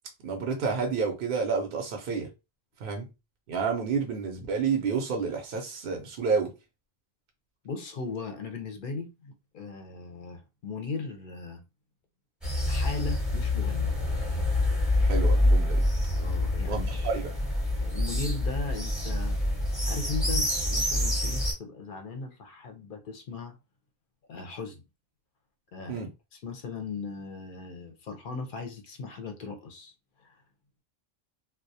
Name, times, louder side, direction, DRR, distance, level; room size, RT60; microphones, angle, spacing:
voice 1, 0.2-2.3 2.8-3.0 3.5-6.5 15.0-15.8 16.7-17.3 25.9-26.1, right 5 dB, 65° right, 0.7 m, -29 dB
voice 2, 7.6-11.6 12.7-13.9 16.2-17.1 17.8-19.4 19.9-23.5 24.3-24.8 25.7-26.1 26.3-29.9 30.2-30.4, left 4 dB, 60° left, 0.7 m, -38 dB
sound 1, 12.4-21.5, left 1 dB, ahead, 0.7 m, -26 dB
2.3 x 2.0 x 2.6 m
omnidirectional pair, 1.0 m